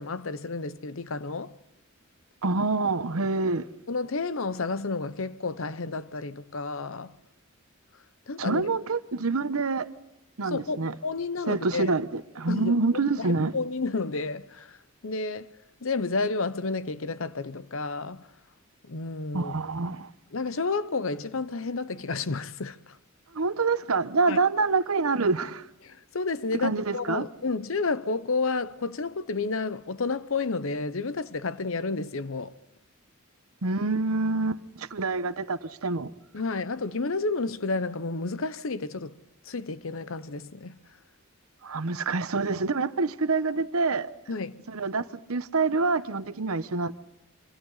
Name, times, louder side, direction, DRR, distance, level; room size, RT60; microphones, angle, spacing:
voice 1, 0.0-1.5 3.9-7.2 8.3-8.7 10.4-11.9 12.5-12.7 13.2-15.5 15.8-18.3 18.8-19.5 20.3-23.0 24.3-24.4 25.8-32.5 36.3-39.2 39.4-40.8 44.3-44.6, left 3 dB, 70° left, 0.9 m, -31 dB
voice 2, 2.4-3.6 8.4-9.9 10.4-10.9 11.5-13.5 19.3-20.1 23.3-25.6 26.5-27.2 33.6-36.1 41.6-44.1 44.7-46.9, right 3 dB, 85° right, 1.0 m, -26 dB
26.5 x 25.0 x 4.1 m
head